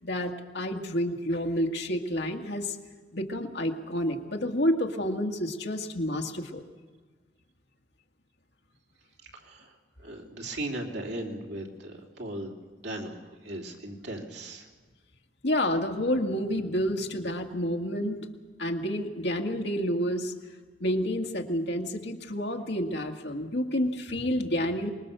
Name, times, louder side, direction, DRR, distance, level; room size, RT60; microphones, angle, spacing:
voice 1, 0.0-2.8 3.1-6.6 15.4-18.3 18.6-20.3 20.8-24.9, equal, 70° left, 2 dB, 2.0 m, -29 dB
voice 2, 9.3-9.7 10.0-12.5 12.8-14.7, right 1 dB, 80° right, 1 dB, 3.2 m, -37 dB
25.0 x 21.0 x 6.9 m, 1.4 s
head